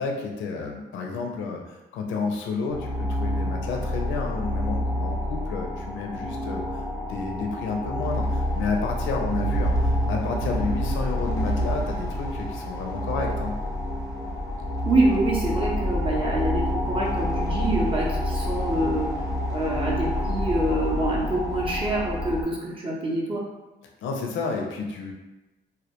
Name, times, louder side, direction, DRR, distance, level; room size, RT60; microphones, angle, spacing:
voice 1, 0.0-6.8 7.1-13.5 24.0-25.1, left 4 dB, 75° left, 1 dB, 0.4 m, -31 dB
sound 1, 2.7-22.4, left 1 dB, 15° left, 0.6 m, -28 dB
voice 2, 14.9-19.1 19.5-23.4, right 2 dB, 25° right, -4 dB, 0.6 m, -26 dB
2.2 x 2.1 x 2.8 m, 1.0 s
cardioid pair, 90°, 20 cm